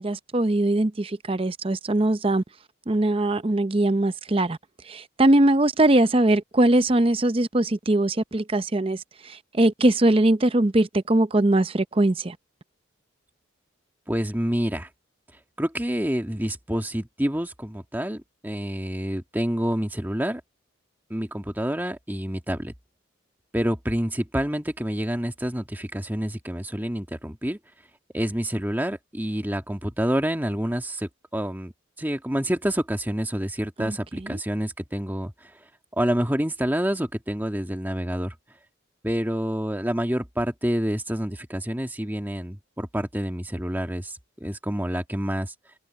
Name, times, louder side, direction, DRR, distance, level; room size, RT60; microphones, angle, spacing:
voice 1, 0.0-2.4 2.9-4.6 4.9-12.4 33.8-34.4, right 1 dB, 25° right, 0.6 m, -21 dB
voice 2, 14.1-14.9 15.6-20.4 21.1-22.7 23.5-27.6 28.1-31.7 32.0-35.5 36.0-38.3 39.0-45.5, equal, 10° right, 1.7 m, -28 dB
head